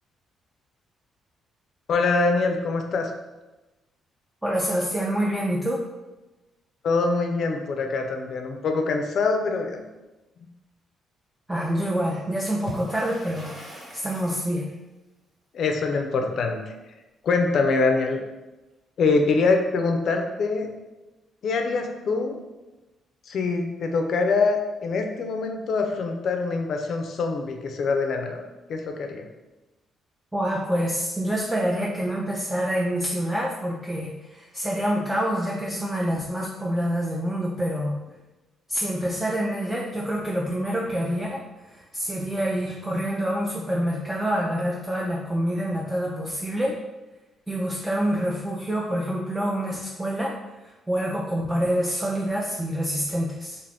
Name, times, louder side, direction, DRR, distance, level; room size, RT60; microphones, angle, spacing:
voice 1, 1.9-3.1 6.8-9.8 15.5-16.7 17.2-18.2 19.0-20.7 21.4-22.4 23.3-28.4 28.7-29.3, left 4 dB, 60° left, 4 dB, 0.4 m, -24 dB
voice 2, 4.4-5.8 11.5-13.6 13.9-14.7 30.3-38.0 38.7-46.8 47.5-50.3 50.6-53.6, equal, 10° right, -4 dB, 0.4 m, -27 dB
Water / Splash splatter, 12.5-14.5, equal, 40° right, 1.2 m, -40 dB
2.5 x 2.5 x 3.4 m, 1.1 s
cardioid pair, 90°, 0 cm